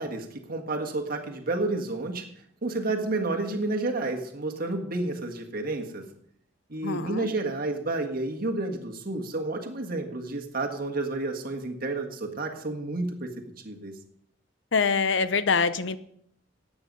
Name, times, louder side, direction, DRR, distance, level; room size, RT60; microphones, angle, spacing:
voice 1, 0.0-2.2 2.6-6.0 6.7-13.3 13.6-13.9, right 2 dB, 50° right, 4 dB, 1.7 m, -30 dB
voice 2, 6.8-7.3 14.7-16.0, left 5 dB, 75° left, 14 dB, 0.7 m, -24 dB
14.0 x 8.9 x 5.4 m, 0.69 s
head